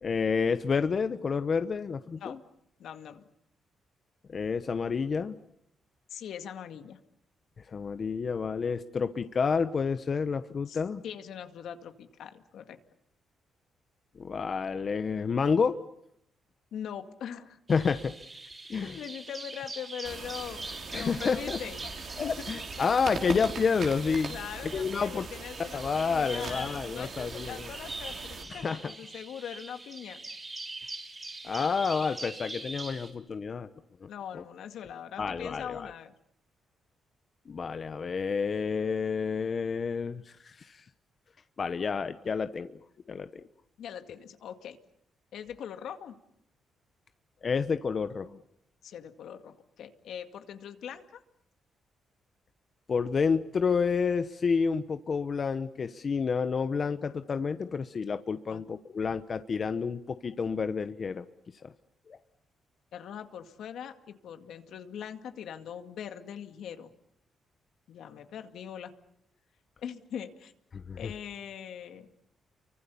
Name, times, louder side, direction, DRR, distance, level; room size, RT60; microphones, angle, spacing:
voice 1, 0.0-2.4 4.3-5.3 7.7-11.0 14.2-15.8 17.7-18.1 18.7-19.0 20.9-21.6 22.2-24.4 24.7-25.2 25.7-27.7 28.5-28.9 31.4-33.7 34.0-34.1 34.3-34.4 35.2-35.9 37.5-40.8 41.6-42.8 43.1-43.4 47.4-48.4 52.9-61.2 61.6-61.7 62.1-62.2 70.9-71.1, left 5 dB, 40° left, 10 dB, 1.0 m, -29 dB
voice 2, 2.8-3.2 6.1-7.0 10.7-12.8 16.7-17.6 18.8-21.8 22.0-22.5 22.8-23.1 24.3-30.2 34.1-36.1 43.1-43.2 43.8-44.8 45.3-46.2 48.8-51.2 58.5-58.6 62.9-66.9 67.9-68.9 69.8-70.5 71.0-72.1, left 8 dB, 75° left, 8 dB, 2.1 m, -42 dB
Bird vocalization bird call bird song, 17.7-33.1, right 2 dB, 20° right, 5.7 m, -43 dB
sound 1, 20.0-28.4, right 5 dB, 65° right, 5.3 m, -41 dB
29.5 x 24.0 x 7.1 m, 0.75 s
cardioid pair, 110°, 0 cm